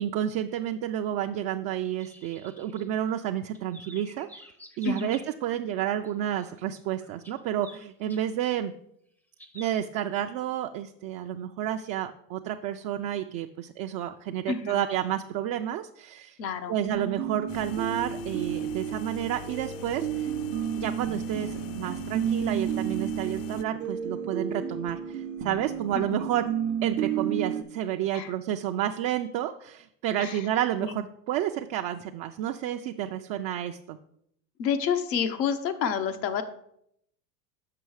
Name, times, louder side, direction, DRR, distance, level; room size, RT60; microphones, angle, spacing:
voice 1, 0.0-4.5 4.8-8.7 9.5-16.4 16.7-20.3 20.8-26.4 26.8-34.0, right 11 dB, 45° right, 5 dB, 0.5 m, -30 dB
sound 1, 2.0-3.3 3.5-5.3 5.8-6.1 6.4-8.2 9.4-9.7, equal, 5° left, 0.5 m, -50 dB
voice 2, 4.8-5.2 14.5-14.9 16.4-16.8 25.9-26.3 28.1-28.3 30.2-30.4 30.8-31.0 34.6-36.4, left 7 dB, 85° left, 8 dB, 1.0 m, -29 dB
sound 2, 16.8-27.6, right 8 dB, 90° right, 0.9 m, -32 dB
sound 3, 17.5-23.6, left 11 dB, 60° left, 0.5 m, -43 dB
6.8 x 5.5 x 4.7 m, 0.73 s
hypercardioid pair, 95°, 49 cm